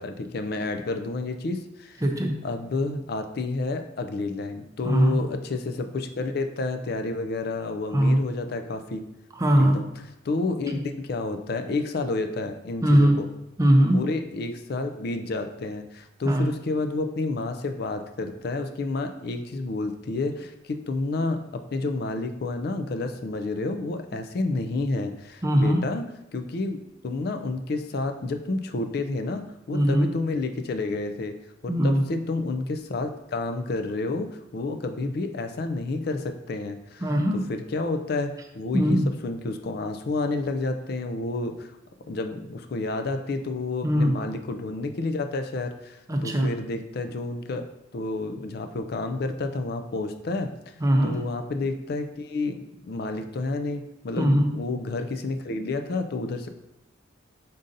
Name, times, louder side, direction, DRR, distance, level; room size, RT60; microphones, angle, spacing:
voice 1, 0.0-2.0 2.4-9.0 9.6-13.3 13.9-26.0 26.3-26.8 27.0-31.4 31.6-37.1 37.5-39.0 39.2-41.7 42.1-47.6 47.9-56.5, left 3 dB, 55° left, 7 dB, 0.4 m, -30 dB
voice 2, 2.0-2.3 4.8-5.2 7.9-8.2 9.4-9.8 10.7-10.8 12.8-13.1 13.6-14.0 16.3-16.5 25.4-25.8 29.7-30.1 31.7-32.0 37.0-37.5 38.7-39.1 43.8-44.1 46.1-46.5 50.8-51.2 54.2-54.5, equal, 15° right, 3 dB, 0.5 m, -20 dB
5.3 x 3.8 x 2.6 m, 0.87 s
head